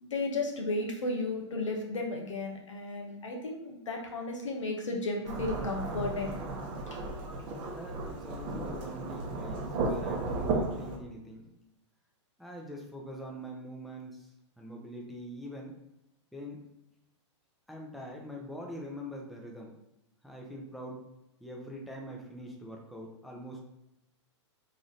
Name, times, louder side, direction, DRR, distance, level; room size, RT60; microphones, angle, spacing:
voice 1, 0.0-6.4 6.9-7.0, left 2 dB, 90° left, 1 dB, 0.9 m, -34 dB
Thunderstorm / Rain, 5.2-11.0, right 3 dB, 35° right, 0.7 m, -34 dB
voice 2, 7.7-11.4 12.4-14.3 14.6-15.7 16.3-16.6 17.7-19.7 20.2-21.0 21.4-23.6, equal, ahead, -1 dB, 0.6 m, -43 dB
3.2 x 2.5 x 4.0 m, 0.87 s
hypercardioid pair, 125°, 15 cm